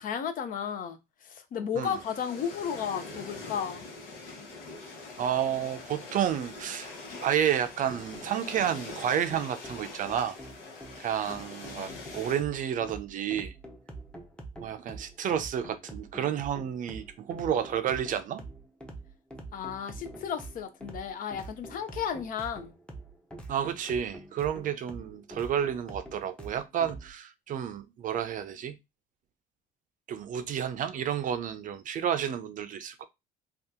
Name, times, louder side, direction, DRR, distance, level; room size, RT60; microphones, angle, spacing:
voice 1, 0.0-3.8 11.3-11.4 11.8-12.0 19.5-22.7, left 8 dB, 55° left, 0.6 m, -34 dB
sound 1, 1.8-12.4, left 3 dB, 90° left, 1.1 m, -44 dB
voice 2, 5.2-6.9 7.2-10.4 11.0-13.5 14.6-18.4 23.5-28.8 30.1-33.0, right 9 dB, 50° right, 0.4 m, -30 dB
sound 2, 7.9-27.1, right 2 dB, 5° left, 0.7 m, -46 dB
2.7 x 2.4 x 3.5 m
cardioid pair, 110°, 17 cm